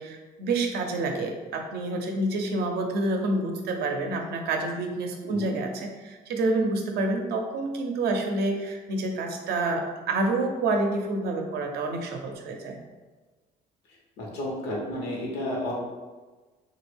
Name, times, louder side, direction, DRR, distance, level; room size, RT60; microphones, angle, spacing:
voice 1, 0.0-12.8, right 2 dB, 70° right, 3 dB, 0.5 m, -28 dB
voice 2, 5.2-5.5 14.2-15.7, left 1 dB, 85° left, -3 dB, 1.0 m, -32 dB
3.0 x 2.4 x 3.3 m, 1.3 s
cardioid pair, 110°, 17 cm